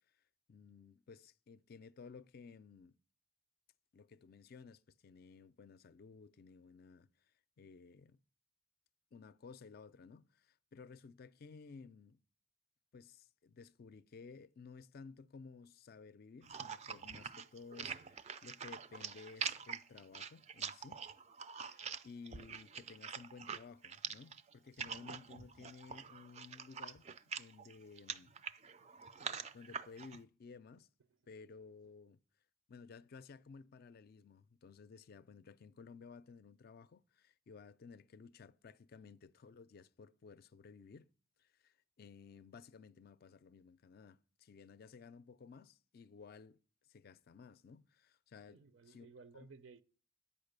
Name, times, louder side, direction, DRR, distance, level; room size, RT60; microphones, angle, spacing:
voice 1, 0.5-2.9 3.9-7.3 7.6-8.2 9.1-12.2 12.9-21.0 21.6-27.1 27.3-28.3 29.1-30.9 31.3-32.2 32.7-41.1 41.4-46.6 46.9-48.6 48.9-49.1 49.3-49.5, left 5 dB, 50° left, 0.4 m, -56 dB
sound 1, 16.4-30.2, right 6 dB, 35° right, 0.4 m, -45 dB
voice 2, 29.2-29.6 48.5-49.8, right 4 dB, 75° right, 0.6 m, -58 dB
8.7 x 5.5 x 6.6 m
head